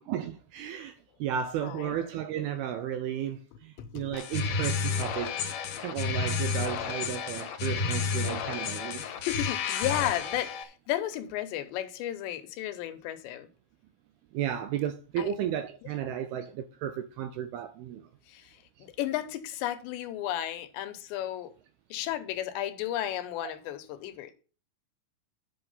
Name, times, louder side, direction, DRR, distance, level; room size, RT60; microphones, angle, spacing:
voice 1, 0.1-0.9 1.2-5.4 5.8-9.0 14.3-18.0, right 10 dB, 80° right, 2.3 m, -33 dB
voice 2, 1.6-2.0 3.8-4.0 9.0-13.5 15.2-15.3 18.3-18.5 18.8-21.5 21.9-24.3, left 12 dB, 80° left, 3.1 m, -33 dB
sound 1, 4.1-10.6, left 5 dB, 65° left, 2.3 m, -31 dB
10.5 x 5.8 x 5.5 m
omnidirectional pair, 5.1 m